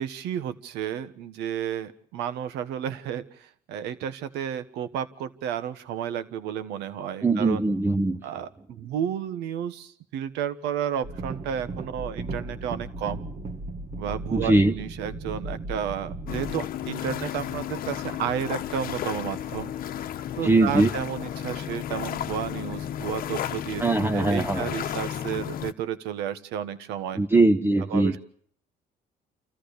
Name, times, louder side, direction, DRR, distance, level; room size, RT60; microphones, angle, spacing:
voice 1, 0.0-7.6 8.2-13.3 14.0-19.7 20.4-27.2 27.9-28.2, right 9 dB, 90° right, 12 dB, 1.4 m, -32 dB
voice 2, 7.2-8.2 14.3-14.7 20.4-20.9 23.8-24.7 27.2-28.2, right 2 dB, 15° right, 5 dB, 0.8 m, -21 dB
sound 1, 11.0-16.5, right 2 dB, 45° right, 1.7 m, -36 dB
sound 2, 16.3-25.7, left 10 dB, 60° left, 1.0 m, -33 dB
28.5 x 14.5 x 6.8 m, 0.62 s
cardioid pair, 110°, 17 cm